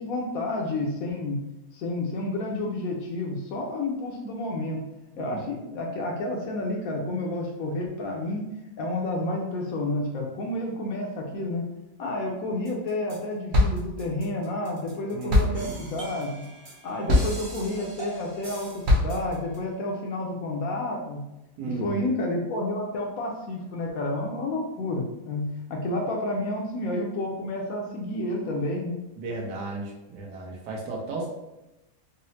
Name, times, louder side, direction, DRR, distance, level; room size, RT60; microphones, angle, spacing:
voice 1, 0.0-1.4 1.7-4.8 5.2-8.4 8.8-11.6 12.0-16.4 16.8-21.2 21.6-29.0, left 2 dB, 70° left, 0 dB, 0.9 m, -30 dB
voice 2, 5.1-5.6 15.1-15.7 21.6-22.0 29.2-31.3, right 3 dB, 80° right, -1 dB, 1.3 m, -34 dB
sound 1, 12.7-13.2 13.5-19.6, left 1 dB, 55° right, 0.8 m, -26 dB
4.0 x 2.0 x 2.7 m, 0.96 s
omnidirectional pair, 1.8 m